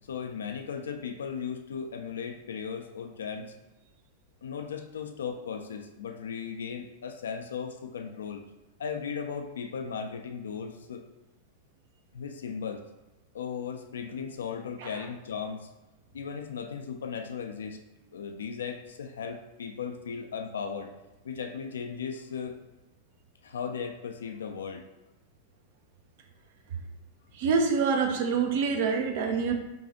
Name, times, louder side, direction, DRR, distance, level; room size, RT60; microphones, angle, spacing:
voice 1, 0.0-3.5 4.4-8.4 8.8-11.1 12.1-12.9 13.3-15.7 16.1-17.8 18.1-20.9 21.2-22.6 23.4-24.9, left 6 dB, 65° left, 6 dB, 0.3 m, -36 dB
voice 2, 27.3-29.5, right 5 dB, 50° right, 4 dB, 0.5 m, -26 dB
5.2 x 2.3 x 2.8 m, 1.0 s
figure-of-eight pair, 90°, 0 cm